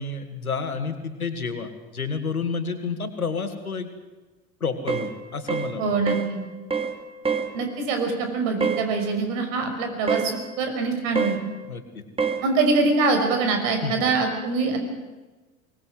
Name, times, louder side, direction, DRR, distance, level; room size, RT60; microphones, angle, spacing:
voice 1, 0.0-3.9 4.6-5.9 11.7-12.0 13.8-14.0, left 4 dB, 90° left, 8 dB, 2.3 m, -30 dB
sound 1, 4.9-5.1 5.5-5.7 6.1-6.3 6.7-7.0 7.2-7.5 8.6-8.9 10.1-10.3 11.2-11.4 12.2-12.4, right 5 dB, 15° right, 2.3 m, -25 dB
voice 2, 5.8-6.4 7.5-11.4 12.4-14.8, right 3 dB, 60° right, 5 dB, 5.9 m, -24 dB
24.0 x 19.0 x 7.8 m, 1.2 s
figure-of-eight pair, 75°, 42 cm